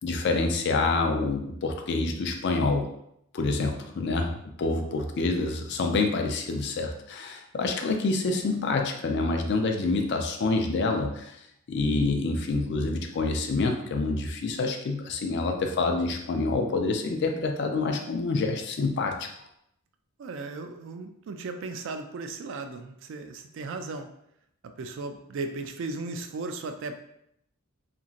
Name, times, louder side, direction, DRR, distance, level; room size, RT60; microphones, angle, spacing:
voice 1, 0.0-2.9 3.3-4.3 4.6-11.4 11.7-19.3, left 3 dB, 50° left, 3 dB, 0.4 m, -27 dB
voice 2, 20.2-24.1 24.6-27.0, right 3 dB, 60° right, 7 dB, 0.3 m, -36 dB
2.9 x 2.5 x 2.4 m, 0.76 s
head